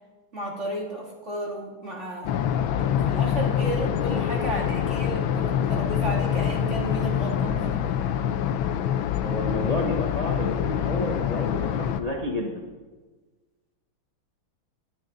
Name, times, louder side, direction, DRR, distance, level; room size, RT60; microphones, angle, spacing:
voice 1, 0.3-2.4 2.8-8.0, right 1 dB, 30° right, -2 dB, 3.1 m, -33 dB
sound 1, 2.2-12.0, left 9 dB, 75° left, 1.5 m, -25 dB
voice 2, 9.2-12.6, left 1 dB, 20° left, 0 dB, 1.1 m, -30 dB
19.5 x 11.5 x 4.0 m, 1.3 s
omnidirectional pair, 2.4 m